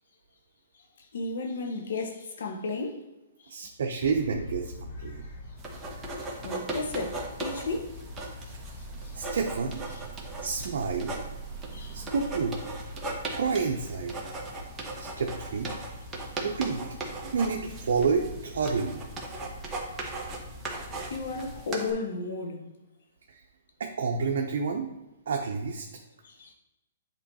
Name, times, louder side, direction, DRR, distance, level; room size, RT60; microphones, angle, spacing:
voice 1, 1.1-3.0 3.4-3.5 6.2-7.9 9.0-9.4 11.7-12.0 16.2-16.3 21.1-22.7 26.2-26.5, left 3 dB, 70° left, 1.2 m, -34 dB
voice 2, 3.5-5.3 9.1-9.8 10.4-11.1 11.9-12.6 13.4-14.2 15.0-15.7 16.4-16.9 17.3-19.0 23.3-23.4 23.8-24.9 25.3-25.9, right 5 dB, 70° right, 0.7 m, -29 dB
sound 1, 4.0-21.6, equal, 45° left, 1.8 m, -43 dB
sound 2, 5.6-21.9, right 2 dB, 15° right, 1.1 m, -39 dB
8.2 x 3.1 x 4.2 m
hypercardioid pair, 150°, 0 cm